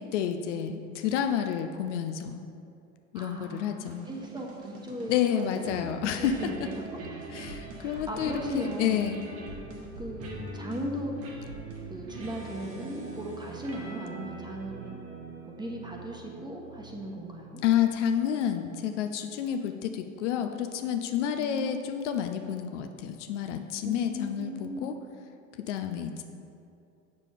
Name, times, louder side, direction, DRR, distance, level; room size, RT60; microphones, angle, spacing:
voice 1, 0.0-2.4 3.1-4.1 5.1-6.7 7.3-9.2 17.6-25.0 25.6-26.2, left 9 dB, 55° left, 7 dB, 0.6 m, -29 dB
voice 2, 3.1-7.0 7.8-9.0 10.0-11.1 11.9-15.0 15.4-17.6 21.4-21.7 23.8-24.9, equal, 10° right, 0 dB, 1.2 m, -38 dB
sound 1, 3.9-17.3, right 3 dB, 35° right, 1.3 m, -42 dB
8.0 x 6.7 x 3.5 m, 2.6 s
figure-of-eight pair, 80°, 42 cm